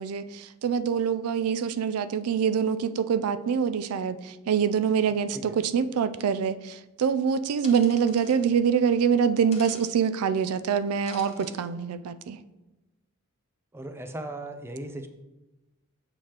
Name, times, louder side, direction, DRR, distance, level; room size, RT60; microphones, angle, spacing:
voice 1, 0.0-12.4, right 7 dB, 80° right, 13 dB, 0.3 m, -25 dB
voice 2, 5.1-5.6 13.7-15.1, right 1 dB, 10° right, 7 dB, 0.4 m, -38 dB
sound 1, 7.6-8.4 9.5-9.9 11.1-11.6, left 4 dB, 30° left, 0.8 m, -46 dB
7.5 x 4.8 x 2.9 m, 1.1 s
head